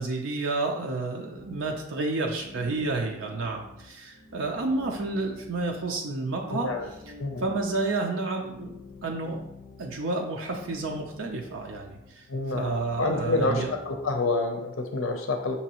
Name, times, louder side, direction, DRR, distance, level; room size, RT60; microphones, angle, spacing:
voice 1, 0.0-6.7 7.4-8.7 9.0-9.4 9.8-12.3 12.5-13.7, right 3 dB, 80° right, 1 dB, 0.5 m, -30 dB
sound 1, 1.3-14.5, left 2 dB, 45° left, 0.5 m, -48 dB
voice 2, 6.5-6.9 7.2-7.4 12.3-12.7 13.0-15.6, left 2 dB, 90° left, 4 dB, 0.6 m, -28 dB
6.0 x 2.8 x 2.9 m, 0.85 s
head